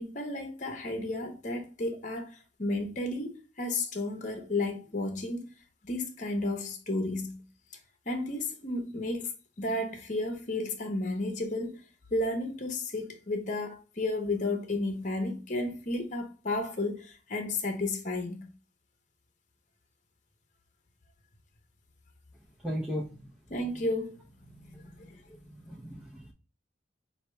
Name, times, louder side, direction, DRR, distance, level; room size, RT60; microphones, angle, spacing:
voice 1, 0.0-2.3 2.6-5.5 5.8-7.4 8.1-9.3 9.6-11.8 12.1-18.5 23.5-25.1 25.4-25.6, left 2 dB, 40° left, 0.9 m, -33 dB
voice 2, 22.6-23.2 25.6-26.3, equal, 5° right, 0.7 m, -35 dB
5.7 x 2.8 x 3.2 m
head